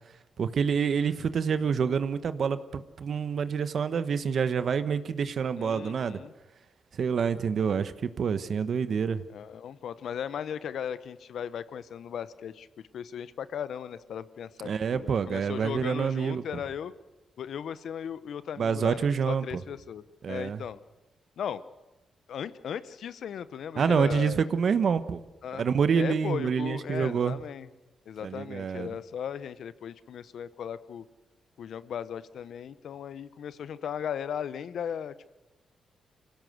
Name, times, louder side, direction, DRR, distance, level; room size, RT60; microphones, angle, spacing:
voice 1, 0.4-6.2 7.0-9.2 14.6-16.4 18.6-19.4 20.2-20.6 23.8-25.2 25.5-27.4 28.2-28.9, right 6 dB, 60° right, 12 dB, 1.1 m, -27 dB
voice 2, 5.6-6.3 9.3-12.7 12.9-16.9 17.4-20.8 21.4-21.6 22.3-24.4 25.4-25.7 25.9-27.7 28.1-31.0 31.6-35.3, left 8 dB, 75° left, 15 dB, 0.9 m, -37 dB
24.5 x 17.0 x 8.0 m, 1.1 s
cardioid pair, 95°, 0 cm